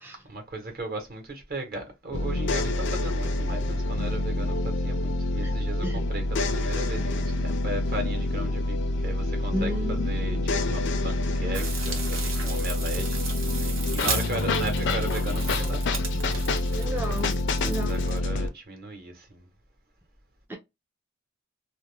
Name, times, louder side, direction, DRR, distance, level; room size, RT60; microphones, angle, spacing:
voice 1, 0.2-16.2 16.5-17.0 17.6-19.5, right 2 dB, 50° right, 1.0 m, -37 dB
sound 1, 2.1-18.5, left 2 dB, 60° left, 0.4 m, -27 dB
voice 2, 9.5-10.4 16.7-17.4 17.6-17.9 20.5-20.6, equal, 10° right, 0.4 m, -33 dB
sound 2, 11.5-18.2, right 4 dB, 85° right, 0.9 m, -36 dB
2.4 x 2.1 x 3.0 m
head